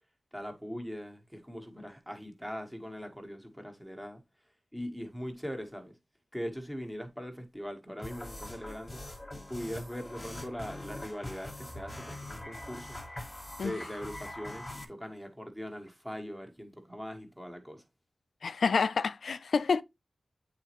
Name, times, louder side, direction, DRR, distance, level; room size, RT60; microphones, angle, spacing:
voice 1, 0.3-4.2 4.7-5.9 6.3-9.0 9.5-13.0 13.6-17.8, equal, 5° right, 1.3 m, -41 dB
sound 1, 8.0-14.8, left 1 dB, 20° left, 1.4 m, -43 dB
voice 2, 18.4-19.8, left 5 dB, 80° left, 0.4 m, -28 dB
8.4 x 4.1 x 3.0 m
wide cardioid pair, 100°, 0 cm